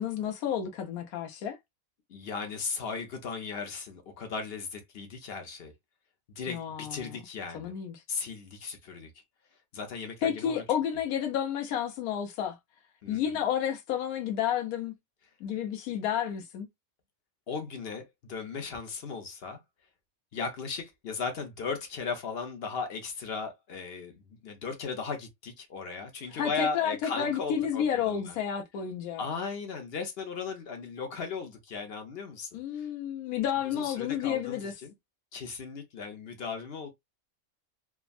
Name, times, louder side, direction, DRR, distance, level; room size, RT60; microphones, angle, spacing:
voice 1, 0.0-1.6 6.5-7.1 7.5-8.0 10.2-12.6 13.1-14.9 15.4-16.7 26.3-29.2 32.5-34.7, left 9 dB, 90° left, 1.1 m, -31 dB
voice 2, 2.1-5.7 6.3-7.7 8.1-9.1 9.7-10.6 13.0-13.4 17.5-19.6 20.3-28.4 29.2-32.9 33.7-34.9 35.3-36.9, left 5 dB, 55° left, 0.8 m, -37 dB
3.4 x 2.0 x 2.3 m
omnidirectional pair, 1.5 m